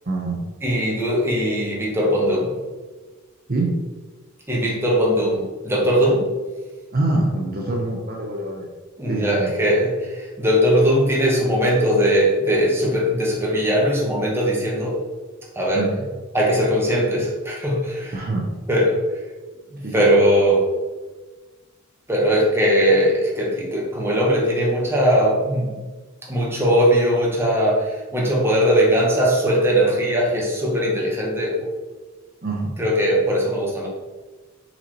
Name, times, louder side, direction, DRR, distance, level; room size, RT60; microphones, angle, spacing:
voice 1, 0.1-0.4 3.5-3.7 6.9-8.7 9.1-9.5 15.7-16.1 18.1-18.5 19.8-20.3 32.4-32.7, right 2 dB, 45° right, -1 dB, 0.9 m, -25 dB
voice 2, 0.6-2.5 4.5-6.3 9.0-15.0 15.5-15.9 16.3-18.2 18.7-19.0 19.7-20.6 22.1-25.8 26.3-31.7 32.8-33.9, equal, 10° right, -3 dB, 1.4 m, -20 dB
5.5 x 4.4 x 4.3 m, 1.3 s
head